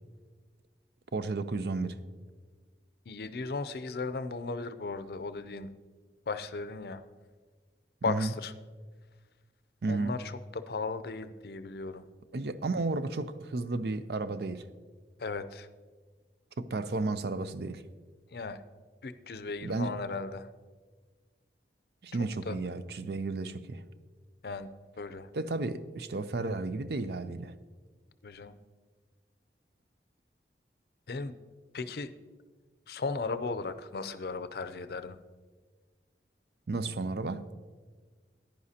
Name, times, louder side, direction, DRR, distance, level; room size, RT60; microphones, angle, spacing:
voice 1, 1.1-2.0 8.1-8.3 9.8-10.2 12.3-14.7 16.6-17.8 19.6-19.9 22.0-23.8 25.3-27.5 36.7-37.4, right 3 dB, 65° right, 0.5 m, -33 dB
voice 2, 3.1-5.7 6.3-7.0 8.0-8.5 9.9-12.0 15.2-15.7 18.3-18.6 19.0-20.5 22.5-22.6 24.4-24.7 25.0-25.3 28.2-28.6 31.1-31.4 31.7-32.1 32.9-35.2, left 4 dB, 60° left, 0.5 m, -36 dB
14.5 x 10.5 x 2.8 m
head